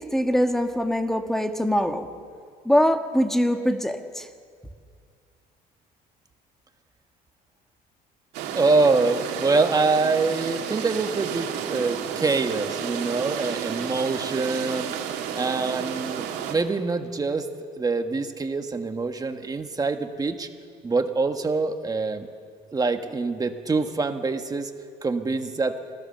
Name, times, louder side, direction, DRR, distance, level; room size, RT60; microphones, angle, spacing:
voice 1, 0.0-2.1 2.6-4.3, equal, ahead, 6 dB, 1.6 m, -23 dB
sound 1, 8.3-16.5, right 8 dB, 90° right, 2.2 m, -31 dB
voice 2, 8.5-14.9 15.3-17.5 17.8-20.5 20.8-22.3 22.7-24.7 25.0-25.7, right 3 dB, 20° right, 6 dB, 1.5 m, -25 dB
26.5 x 16.0 x 6.9 m, 2.2 s
cardioid pair, 110°, 17 cm